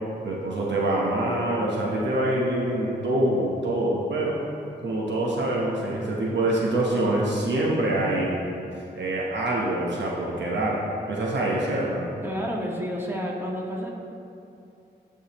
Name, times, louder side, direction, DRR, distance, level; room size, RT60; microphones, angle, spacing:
voice 1, 0.2-4.4 4.8-8.4 9.0-10.8 11.1-12.1, right 1 dB, 80° right, -3 dB, 1.0 m, -25 dB
voice 2, 12.2-13.9, equal, 10° right, -3 dB, 1.6 m, -30 dB
12.0 x 4.8 x 3.0 m, 2.6 s
cardioid pair, 45°, 18 cm